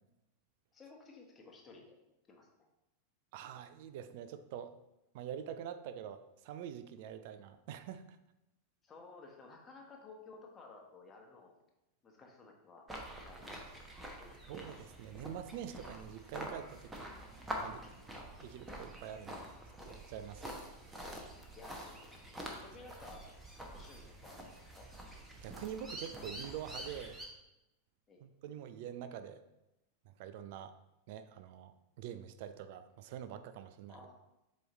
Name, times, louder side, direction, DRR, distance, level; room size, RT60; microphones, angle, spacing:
voice 1, 0.7-2.0 2.3-2.5 8.8-11.6 12.0-12.9 13.2-13.7 14.2-14.4 20.4-20.8 21.6-22.2 22.6-23.2 23.7-24.5 24.7-24.9 28.1-28.3 33.9-34.1, left 3 dB, 20° left, 1 dB, 1.2 m, -55 dB
voice 2, 3.3-4.7 5.1-8.2 14.4-17.1 17.6-17.8 18.4-19.5 19.9-20.6 25.4-27.2 28.2-29.4 30.1-30.7 31.1-31.7 32.0-34.0, right 9 dB, 50° right, 11 dB, 0.4 m, -45 dB
sound 1, 12.9-27.3, right 1 dB, 10° right, 1.0 m, -47 dB
7.6 x 3.2 x 3.9 m, 0.94 s
figure-of-eight pair, 90°, 0 cm